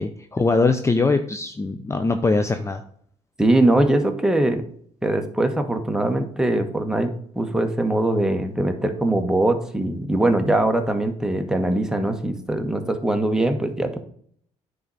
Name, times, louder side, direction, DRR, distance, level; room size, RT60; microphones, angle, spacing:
voice 1, 0.0-2.8, left 3 dB, 20° left, 7 dB, 0.6 m, -22 dB
voice 2, 3.4-4.7 5.0-14.0, right 1 dB, 5° right, 5 dB, 1.3 m, -22 dB
9.3 x 3.9 x 5.6 m, 0.62 s
supercardioid pair, 80°, 13 cm